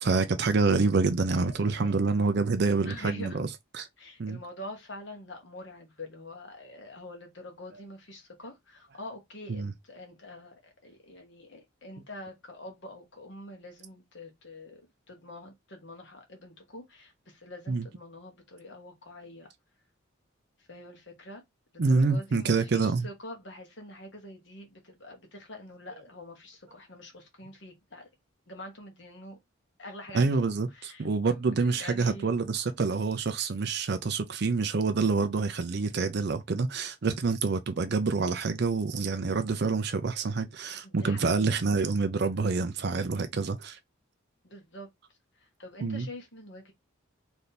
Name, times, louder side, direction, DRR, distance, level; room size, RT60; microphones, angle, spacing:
voice 1, 0.0-3.5 3.7-3.9 4.2-4.4 9.5-9.7 17.7-17.9 21.8-23.1 30.1-43.8 45.8-46.1, right 4 dB, 50° right, 0.5 m, -27 dB
voice 2, 1.3-2.3 2.8-3.4 4.0-10.5 10.8-14.8 15.1-19.5 20.7-21.4 21.7-28.1 28.5-29.4 29.8-30.4 30.7-32.3 40.8-41.5 44.4-44.9 45.4-46.7, left 1 dB, 55° left, 1.3 m, -45 dB
3.3 x 2.7 x 4.0 m
head